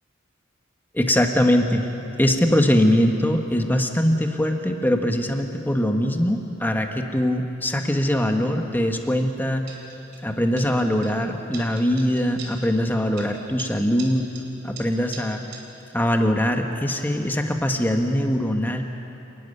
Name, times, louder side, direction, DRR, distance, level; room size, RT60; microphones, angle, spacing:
voice 1, 0.9-1.8 2.2-9.7 10.2-14.3 14.6-15.4 15.9-18.8, equal, 10° left, 4 dB, 1.5 m, -22 dB
sound 1, 9.7-10.3 10.6-11.2 11.5-12.9 13.2-15.6, right 5 dB, 60° right, 3.6 m, -42 dB
28.0 x 12.0 x 9.8 m, 2.9 s
head